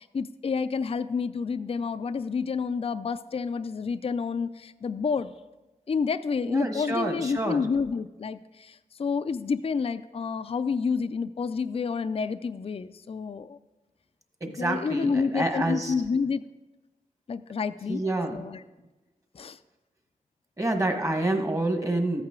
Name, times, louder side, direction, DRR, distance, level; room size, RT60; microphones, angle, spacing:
voice 1, 0.0-5.3 5.9-13.6 14.5-16.4 17.3-18.0 18.3-18.6 19.3-19.6, left 5 dB, 40° left, 12 dB, 0.4 m, -29 dB
voice 2, 6.5-7.6 14.4-15.9 17.9-18.4 20.6-22.2, right 1 dB, 20° right, 4 dB, 1.4 m, -28 dB
13.5 x 8.8 x 3.7 m, 1.1 s
wide cardioid pair, 70°, 15 cm